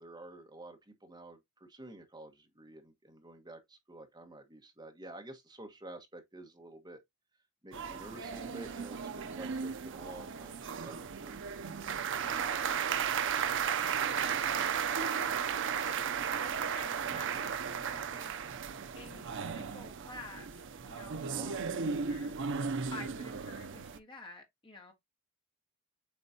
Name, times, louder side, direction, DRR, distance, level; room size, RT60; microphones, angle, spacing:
voice 1, 0.0-7.0 7.6-10.6 10.8-11.4 21.3-21.5, right 1 dB, 20° right, 1.4 m, -50 dB
sound 1, 7.7-24.0, right 7 dB, 55° right, 0.6 m, -35 dB
voice 2, 13.3-13.7 14.2-15.4 15.8-18.3 19.0-20.6 20.9-21.6 22.1-22.3 22.9-24.9, left 2 dB, 25° left, 2.1 m, -51 dB
8.0 x 4.3 x 2.8 m
head